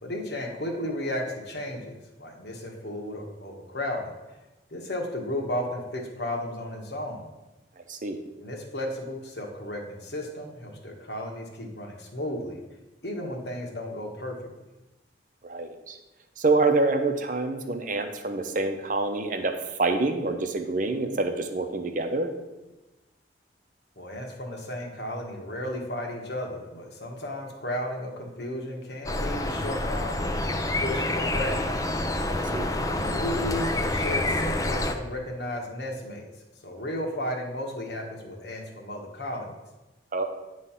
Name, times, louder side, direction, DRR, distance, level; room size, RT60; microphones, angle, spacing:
voice 1, 0.0-1.9 2.2-4.1 4.7-7.3 8.4-12.6 13.0-14.7 24.0-31.7 32.9-36.3 36.6-39.5, left 1 dB, 65° left, 1 dB, 1.3 m, -34 dB
voice 2, 7.9-8.2 15.4-16.0 16.4-22.3 32.3-32.7 40.1-40.2, right 3 dB, 45° right, 6 dB, 0.7 m, -26 dB
sound 1, 29.0-34.9, left 1 dB, 20° left, 0.5 m, -27 dB
9.6 x 3.2 x 5.6 m, 1.1 s
head